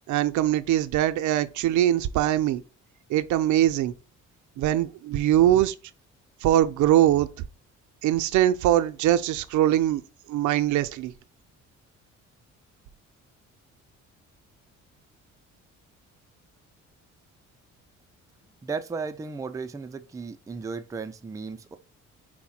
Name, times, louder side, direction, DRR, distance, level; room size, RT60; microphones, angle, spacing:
voice 1, 0.1-2.6 3.1-3.9 4.6-5.7 6.4-7.3 8.0-10.0 10.3-11.1, right 12 dB, 75° right, 0.5 m, -22 dB
voice 2, 18.6-21.8, right 4 dB, 10° right, 0.3 m, -35 dB
4.6 x 2.1 x 4.2 m
cardioid pair, 90°, 30 cm